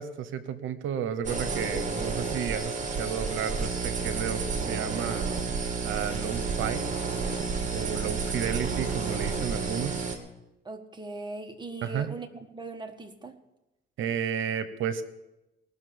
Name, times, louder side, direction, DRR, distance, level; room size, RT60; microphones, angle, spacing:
voice 1, 0.0-5.3 5.8-6.9 7.7-10.1 11.8-12.1 14.0-15.0, right 8 dB, 80° right, 12 dB, 1.0 m, -32 dB
sound 1, 1.2-10.2, right 4 dB, 40° right, 2.4 m, -31 dB
voice 2, 10.6-13.4, right 2 dB, 20° right, 5 dB, 1.6 m, -40 dB
19.5 x 6.7 x 7.0 m, 0.94 s
cardioid pair, 90°, 20 cm